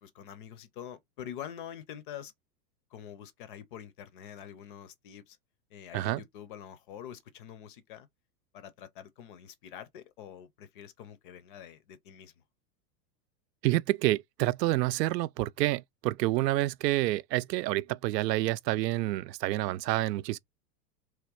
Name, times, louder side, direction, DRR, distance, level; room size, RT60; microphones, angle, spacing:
voice 1, 0.0-2.3 2.9-5.4 5.7-8.1 8.5-12.3, left 9 dB, 35° left, 0.5 m, -46 dB
voice 2, 13.6-20.4, right 17 dB, 80° right, 0.6 m, -28 dB
3.6 x 3.1 x 4.7 m
supercardioid pair, 165°, 49 cm